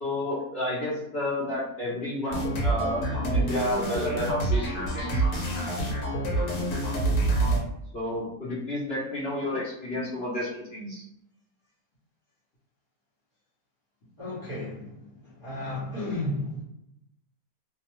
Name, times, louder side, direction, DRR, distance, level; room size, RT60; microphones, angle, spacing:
voice 1, 0.0-5.2 7.9-11.0, left 1 dB, 50° left, -7 dB, 0.9 m, -31 dB
sound 1, 2.3-7.6, right 2 dB, 70° left, 1.2 m, -27 dB
voice 2, 14.2-14.9 15.4-16.6, left 1 dB, 25° right, -9 dB, 0.5 m, -32 dB
2.8 x 2.0 x 3.0 m, 0.79 s
omnidirectional pair, 1.7 m